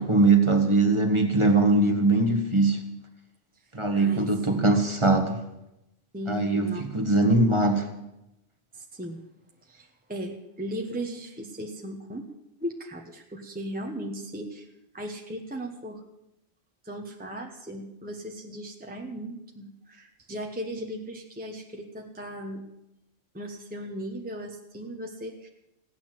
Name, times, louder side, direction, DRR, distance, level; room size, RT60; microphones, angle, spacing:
voice 1, 0.0-2.8 3.7-5.4 6.3-7.9, right 2 dB, 25° right, 5 dB, 1.5 m, -21 dB
voice 2, 3.9-4.7 6.1-6.9 8.7-9.2 9.7-12.2 12.6-14.7 14.9-16.0 16.8-22.6 23.3-25.5, equal, 10° right, 2 dB, 1.1 m, -37 dB
16.0 x 9.8 x 7.6 m, 0.89 s
omnidirectional pair, 1.3 m